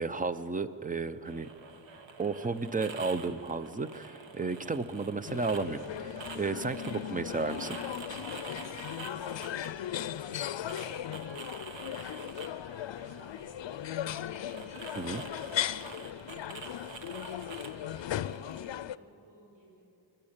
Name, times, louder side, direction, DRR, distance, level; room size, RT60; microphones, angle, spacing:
voice 1, 0.0-1.5 2.2-7.8 15.0-15.2, right 4 dB, 20° right, 12 dB, 0.6 m, -33 dB
sound 1, 1.2-18.8, right 4 dB, 85° right, 1.3 m, -47 dB
sound 2, 5.3-19.0, left 11 dB, 80° left, 0.6 m, -37 dB
voice 2, 8.1-9.7 10.6-12.4 12.9-19.8, equal, 45° right, -4 dB, 4.4 m, -61 dB
27.5 x 12.0 x 8.8 m, 2.9 s
wide cardioid pair, 140°, 44 cm